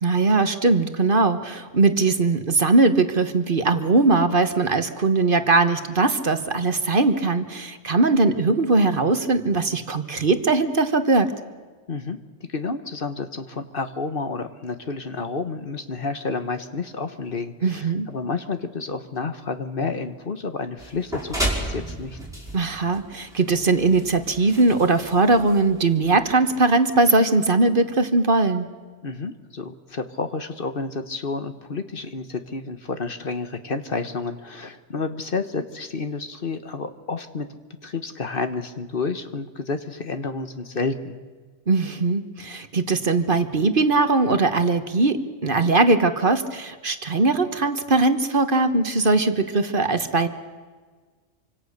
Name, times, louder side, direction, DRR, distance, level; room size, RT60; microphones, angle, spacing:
voice 1, 0.0-11.3 17.6-18.1 22.5-28.7 41.7-50.3, right 3 dB, 45° right, 9 dB, 1.4 m, -20 dB
voice 2, 12.5-22.2 29.0-37.5 37.8-41.1, left 4 dB, 50° left, 9 dB, 1.3 m, -30 dB
sound 1, 20.8-26.1, right 1 dB, 5° right, 5.1 m, -33 dB
27.0 x 25.5 x 6.6 m, 1.5 s
omnidirectional pair, 1.2 m